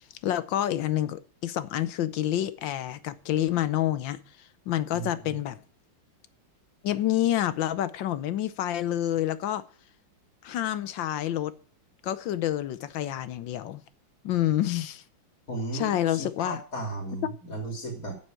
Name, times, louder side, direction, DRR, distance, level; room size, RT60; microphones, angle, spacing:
voice 1, 0.2-4.2 4.7-5.6 6.8-9.6 10.4-11.5 12.0-13.8 14.2-15.0 15.7-16.6, left 12 dB, 75° left, 1.5 m, -28 dB
voice 2, 4.9-5.3 15.5-18.1, right 2 dB, 45° left, 3.8 m, -35 dB
8.5 x 7.5 x 8.9 m
omnidirectional pair, 2.1 m